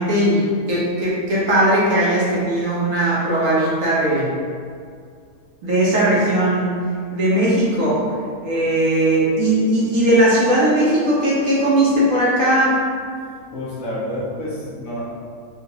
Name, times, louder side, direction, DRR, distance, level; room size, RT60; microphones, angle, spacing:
voice 1, 0.0-4.3 5.6-6.8 7.1-8.0 8.4-12.8, right 1 dB, 60° right, -7 dB, 1.2 m, -18 dB
voice 2, 13.5-15.0, left 1 dB, 60° left, -6 dB, 1.2 m, -28 dB
3.9 x 2.4 x 3.9 m, 2.2 s
omnidirectional pair, 1.8 m